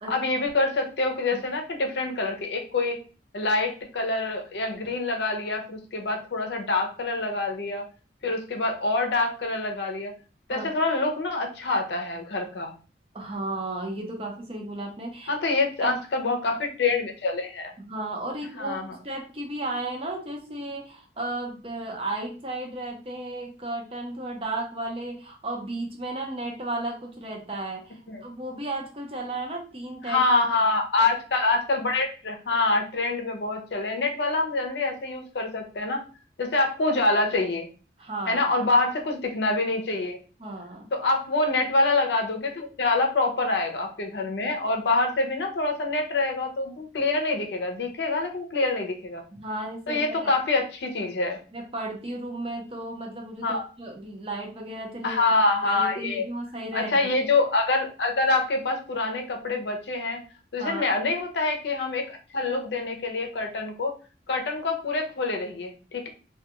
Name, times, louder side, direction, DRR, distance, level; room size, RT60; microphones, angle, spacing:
voice 1, 0.1-3.0 3.3-7.8 8.2-10.1 10.5-12.7 15.3-17.7 18.6-19.0 28.1-28.2 30.0-36.0 36.4-37.7 38.3-40.2 40.9-49.2 49.9-51.4 53.4-53.7 55.0-56.2 56.7-60.2 60.5-63.9 64.3-66.1, left 3 dB, 75° left, 4 dB, 0.6 m, -26 dB
voice 2, 13.1-15.3 15.8-16.0 17.8-30.2 38.0-38.4 40.4-40.9 49.3-50.3 51.5-55.2 55.6-57.1 60.6-60.9, right 2 dB, 30° right, 1 dB, 0.6 m, -34 dB
2.3 x 2.2 x 2.8 m, 0.36 s
head